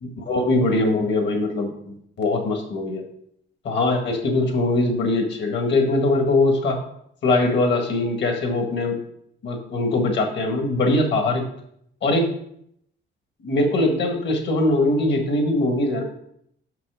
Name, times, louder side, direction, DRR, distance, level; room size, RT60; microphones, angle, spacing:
voice 1, 0.0-3.0 3.6-6.8 7.2-9.0 9.4-11.4 12.0-12.3 13.4-16.0, left 2 dB, 60° left, 3 dB, 1.7 m, -21 dB
6.3 x 5.9 x 4.9 m, 0.70 s
cardioid pair, 145°, 20 cm